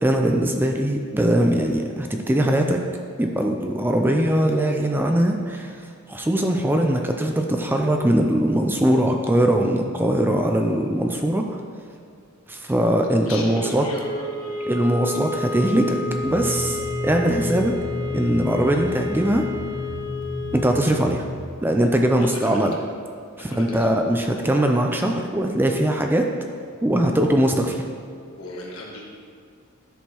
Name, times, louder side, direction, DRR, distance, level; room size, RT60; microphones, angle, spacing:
voice 1, 0.0-2.8 3.2-5.8 6.1-11.6 12.5-13.8 14.6-17.8 18.1-19.5 20.5-21.2 21.6-22.8 23.4-26.3 26.8-27.8, right 1 dB, 10° right, 3 dB, 0.4 m, -21 dB
voice 2, 13.3-14.6 22.2-22.7 23.4-23.9 28.4-29.0, left 1 dB, 75° left, -2 dB, 1.5 m, -35 dB
sound 1, 13.9-20.9, left 4 dB, 45° left, 1.6 m, -31 dB
sound 2, 16.1-21.4, equal, 40° right, 1.0 m, -32 dB
10.0 x 6.4 x 3.0 m, 2.3 s
head